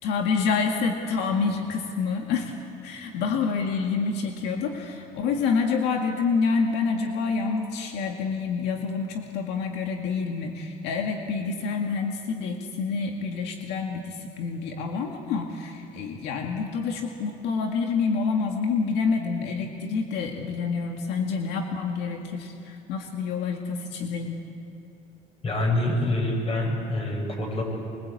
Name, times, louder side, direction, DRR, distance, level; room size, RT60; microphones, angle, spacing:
voice 1, 0.0-2.5 2.8-24.4, left 5 dB, 90° left, 2 dB, 2.0 m, -27 dB
voice 2, 25.4-27.6, left 1 dB, 35° left, 1 dB, 7.5 m, -26 dB
25.0 x 23.0 x 8.4 m, 2.8 s
cardioid pair, 110°, 17 cm